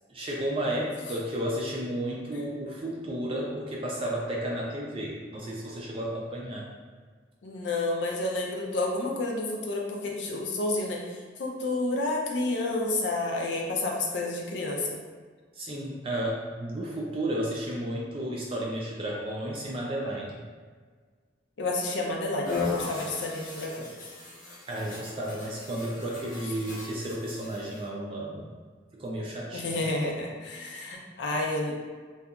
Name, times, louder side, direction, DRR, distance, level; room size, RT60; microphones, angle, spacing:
voice 1, 0.1-6.7 15.5-20.4 24.7-28.5 28.9-29.8, right 1 dB, 30° right, -3 dB, 0.3 m, -32 dB
voice 2, 7.4-11.0 11.4-14.9 21.6-23.9 29.5-31.8, left 2 dB, 80° left, 0 dB, 0.5 m, -30 dB
sound 1, 22.4-27.9, left 4 dB, 45° left, 0.7 m, -37 dB
2.8 x 2.3 x 2.4 m, 1.5 s
head